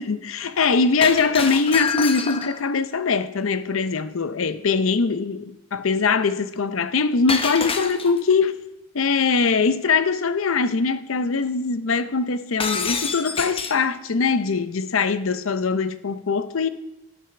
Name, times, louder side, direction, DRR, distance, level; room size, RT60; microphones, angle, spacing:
voice 1, 0.0-8.5 8.9-16.7, left 4 dB, 75° left, 0.7 m, -22 dB
Shatter, 1.0-2.7 7.3-8.3 12.6-13.9, left 5 dB, 25° left, 0.8 m, -27 dB
12.0 x 9.7 x 6.0 m
head